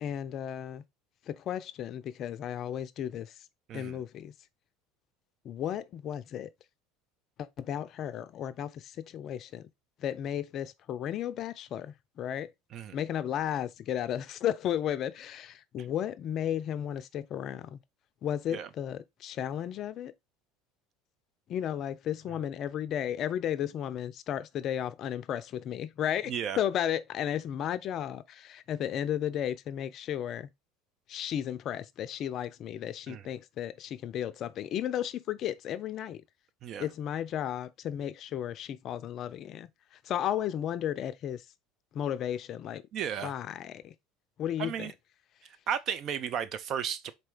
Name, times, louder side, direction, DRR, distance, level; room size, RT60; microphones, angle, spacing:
voice 1, 0.0-0.8 1.3-3.3 3.7-4.3 5.4-6.5 7.4-9.7 10.0-12.5 12.9-17.8 18.2-20.1 21.5-30.5 31.1-36.2 36.8-39.7 40.0-41.5 41.9-42.8 43.2-43.9 44.4-44.9, left 10 dB, 50° left, 0.4 m, -34 dB
voice 2, 26.3-26.6 33.1-33.2 36.6-36.9 42.9-43.3 44.6-44.9 45.4-47.1, right 8 dB, 50° right, 0.5 m, -34 dB
4.3 x 2.7 x 3.5 m
hypercardioid pair, 70°, 0 cm